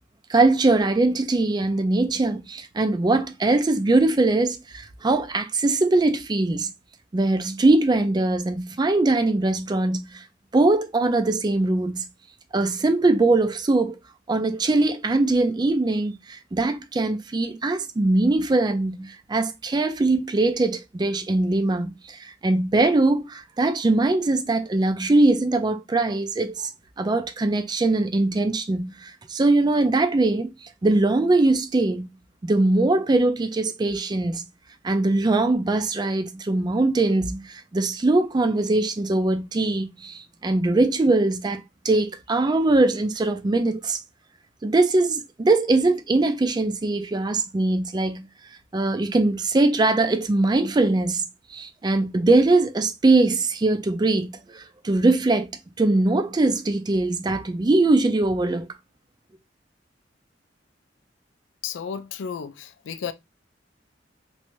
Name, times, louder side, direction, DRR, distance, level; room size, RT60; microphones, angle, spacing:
voice 1, 0.3-6.7 7.1-10.2 10.5-12.0 12.5-14.0 14.3-26.7 27.0-32.1 32.4-34.5 34.8-44.0 44.6-48.3 48.7-51.2 51.5-55.5 55.8-58.7, right 2 dB, 25° right, 0.4 m, -21 dB
voice 2, 61.6-63.1, left 7 dB, 90° left, 0.4 m, -33 dB
3.2 x 2.6 x 3.0 m
head